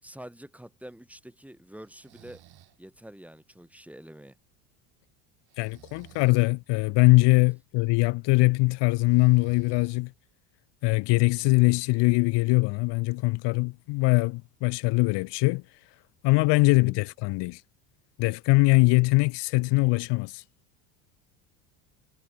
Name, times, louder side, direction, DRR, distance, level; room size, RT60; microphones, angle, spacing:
voice 1, 0.0-2.4 2.8-4.3 16.8-17.0, right 1 dB, 5° right, 4.9 m, -46 dB
Breathing, 1.9-2.8 5.5-6.5 8.9-10.3, right 13 dB, 50° right, 6.3 m, -53 dB
voice 2, 5.6-10.1 10.8-15.6 16.2-17.6 18.2-20.4, left 25 dB, 60° left, 1.1 m, -22 dB
hypercardioid pair, 80°, 48 cm